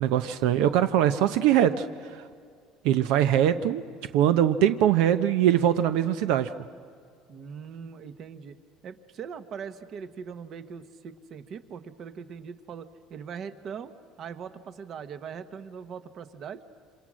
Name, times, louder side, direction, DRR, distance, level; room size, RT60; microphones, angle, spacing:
voice 1, 0.0-1.9 2.8-3.8 4.1-6.5, right 10 dB, 75° right, 11 dB, 0.8 m, -22 dB
voice 2, 7.3-8.5 8.8-16.6, right 6 dB, 40° right, 11 dB, 1.1 m, -41 dB
27.5 x 26.5 x 6.3 m, 2.2 s
cardioid pair, 145°, 0 cm